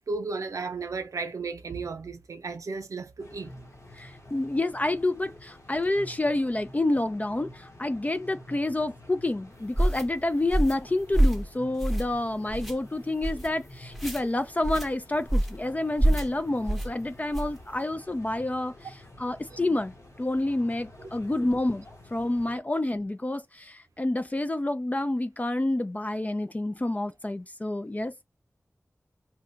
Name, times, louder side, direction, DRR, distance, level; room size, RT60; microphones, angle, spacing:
voice 1, 0.1-3.5 19.5-19.6 21.0-21.1, right 4 dB, 85° right, 0.6 m, -34 dB
sound 1, 3.2-22.6, left 1 dB, 80° left, 1.2 m, -49 dB
voice 2, 4.0-18.7 19.2-21.8 22.1-28.1, left 2 dB, 30° left, 0.4 m, -28 dB
sound 2, 9.8-10.0 10.5-10.8 11.1-11.5 11.8-12.2 12.5-12.7 13.2-13.5 13.9-14.2 14.6-14.9 15.3-15.6 16.0-16.3 16.7-16.9 17.3-17.6, right 1 dB, ahead, 0.8 m, -25 dB
2.9 x 2.2 x 3.7 m
cardioid pair, 40°, 5 cm